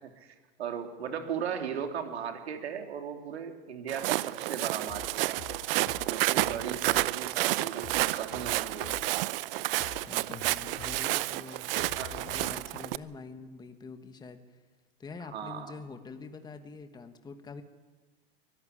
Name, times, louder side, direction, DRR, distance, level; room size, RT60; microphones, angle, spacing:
voice 1, 0.0-5.4 6.0-9.1 11.8-12.3 15.2-15.7, right 7 dB, 85° right, 5 dB, 3.2 m, -37 dB
Walk footsteps, 3.9-13.0, right 17 dB, 60° right, 0.7 m, -30 dB
sound 1, 4.9-7.3 7.6-9.2 9.6-12.8, left 11 dB, 40° left, 1.5 m, -47 dB
voice 2, 10.0-14.6 15.0-17.6, left 4 dB, 15° left, 8 dB, 1.4 m, -45 dB
23.0 x 14.0 x 10.0 m, 1.3 s
hypercardioid pair, 120°, 32 cm